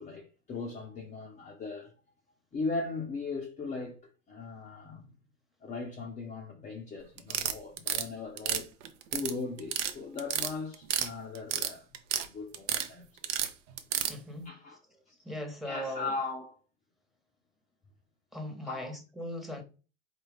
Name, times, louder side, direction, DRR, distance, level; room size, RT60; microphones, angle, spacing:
voice 1, 0.0-1.9 2.5-4.0 4.3-5.1 5.6-8.7 9.1-11.9 12.2-13.3 14.4-14.8 15.1-15.2 15.6-16.5 18.6-18.9, left 3 dB, 20° left, 0.7 m, -38 dB
sound 1, 7.2-8.0 8.4-9.3 9.6-9.9 10.2-11.1 11.3-12.3 12.5-12.9 13.2-14.1, right 10 dB, 70° right, 0.7 m, -30 dB
voice 2, 14.1-14.6 15.2-16.1 18.3-19.6, equal, ahead, 1.0 m, -39 dB
4.3 x 2.4 x 3.4 m
hypercardioid pair, 85°, 38 cm